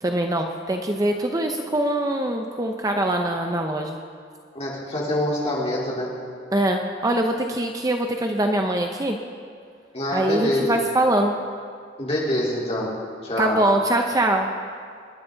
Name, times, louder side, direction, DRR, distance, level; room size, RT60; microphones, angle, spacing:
voice 1, 0.0-4.0 6.5-9.2 10.1-11.3 13.4-14.5, right 1 dB, 20° right, 3 dB, 0.7 m, -23 dB
voice 2, 4.5-6.2 9.9-10.7 12.0-12.9 13.2-13.6, left 1 dB, 35° left, -6 dB, 3.8 m, -25 dB
26.0 x 10.5 x 3.9 m, 2.2 s
head